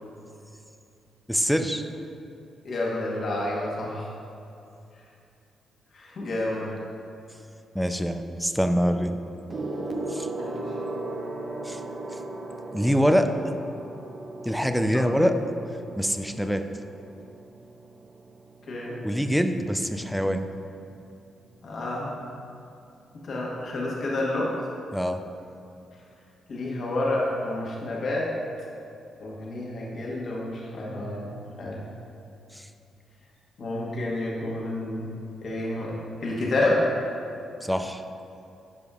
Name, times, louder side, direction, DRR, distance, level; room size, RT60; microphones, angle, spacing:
voice 1, 1.3-1.8 7.7-9.2 10.1-10.3 11.6-11.8 12.7-13.3 14.4-15.4 16.0-16.7 19.0-20.5 24.9-25.2 32.5-32.7 37.6-38.0, equal, ahead, 7 dB, 0.5 m, -24 dB
voice 2, 2.6-4.1 5.9-6.7 10.4-10.6 14.9-15.2 18.7-19.0 21.6-22.2 23.2-24.5 26.5-28.3 29.2-31.3 31.6-31.8 33.6-35.1 35.4-36.9, left 2 dB, 60° left, -5 dB, 1.4 m, -29 dB
Gong, 9.5-19.3 20.2-20.5, right 2 dB, 40° right, 0.8 m, -37 dB
13.0 x 5.2 x 2.5 m, 2.7 s
cardioid pair, 65°, 0 cm